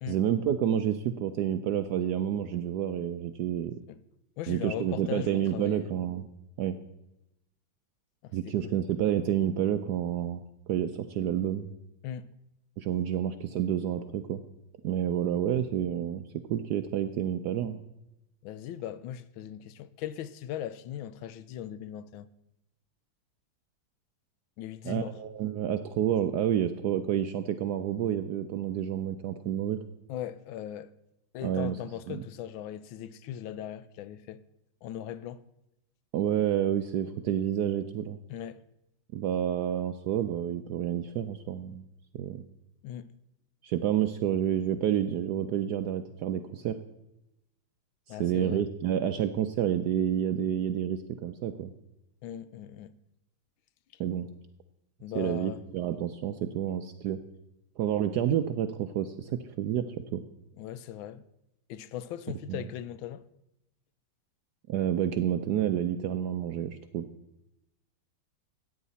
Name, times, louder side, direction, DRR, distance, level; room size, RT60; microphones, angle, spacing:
voice 1, 0.1-3.7 4.5-6.3 6.6-6.8 8.3-10.4 10.7-11.7 12.8-14.4 14.8-16.2 16.5-17.8 24.8-29.8 31.4-31.8 32.1-32.2 36.1-38.2 39.1-41.8 42.2-42.5 43.6-46.7 48.1-51.7 54.0-54.3 55.1-57.2 57.8-59.8 60.1-60.2 62.5-62.6 64.7-67.0, right 10 dB, 75° right, 0.9 m, -29 dB
voice 2, 4.4-5.9 8.2-8.8 12.0-12.3 18.4-22.3 24.6-25.2 30.1-30.9 31.3-34.4 34.8-35.4 38.3-38.6 42.8-43.1 48.1-48.6 52.2-53.0 55.0-55.6 60.6-61.2 61.7-63.2, left 11 dB, 80° left, 1.3 m, -39 dB
14.0 x 9.2 x 4.1 m
omnidirectional pair, 2.2 m